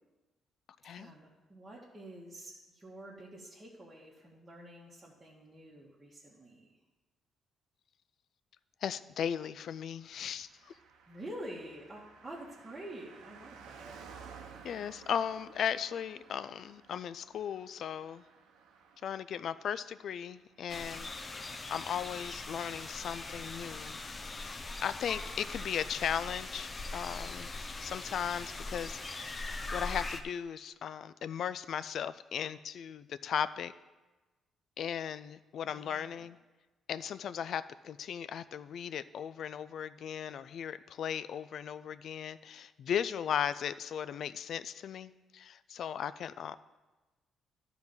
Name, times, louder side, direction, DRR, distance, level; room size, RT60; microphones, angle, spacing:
voice 1, 0.9-6.7 10.7-10.8 11.1-13.9 35.6-36.3, right 1 dB, 20° right, -6 dB, 1.5 m, -48 dB
voice 2, 8.8-10.7 14.6-18.2 19.0-21.1 21.7-24.0 24.4-24.6 24.8-27.5 27.8-29.4 29.7-33.7 34.8-36.4 36.9-46.6, left 8 dB, 65° left, 15 dB, 0.3 m, -37 dB
Car passing by, 10.3-22.2 22.4-22.5, right 6 dB, 90° right, 0.8 m, -55 dB
sound 1, 20.7-30.2, left 3 dB, 30° left, 0.7 m, -41 dB
10.5 x 4.0 x 7.1 m, 1.2 s
cardioid pair, 90°, 0 cm